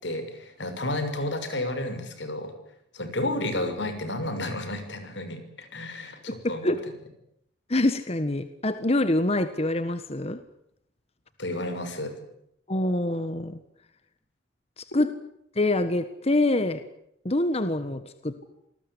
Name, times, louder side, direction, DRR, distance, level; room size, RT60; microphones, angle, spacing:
voice 1, 0.0-2.5 2.9-6.7 11.4-12.1, left 1 dB, 85° left, 9 dB, 6.3 m, -31 dB
voice 2, 6.3-6.8 7.7-10.4 12.7-13.6 14.8-15.1 15.5-16.8 17.2-18.4, left 2 dB, 35° left, 11 dB, 1.5 m, -25 dB
27.0 x 20.0 x 9.9 m, 0.75 s
head